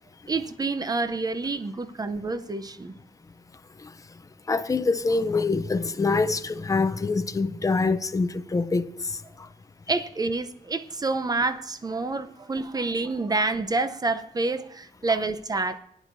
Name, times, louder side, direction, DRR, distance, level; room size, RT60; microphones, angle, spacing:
voice 1, 0.3-3.0 9.9-15.8, right 3 dB, 25° right, 0.6 m, -28 dB
voice 2, 4.5-9.5, left 3 dB, 20° left, 0.5 m, -25 dB
19.0 x 10.0 x 2.6 m
wide cardioid pair, 135°, 15 cm